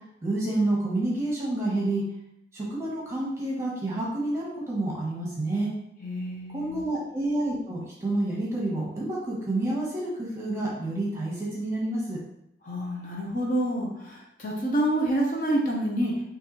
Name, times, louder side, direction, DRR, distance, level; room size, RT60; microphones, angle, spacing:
voice 1, 0.2-2.0 2.5-5.7 6.5-12.2, right 2 dB, 15° right, -5 dB, 1.1 m, -29 dB
voice 2, 6.0-6.8 12.6-16.1, right 1 dB, 45° left, -3 dB, 0.9 m, -27 dB
5.5 x 2.7 x 3.1 m, 0.78 s
head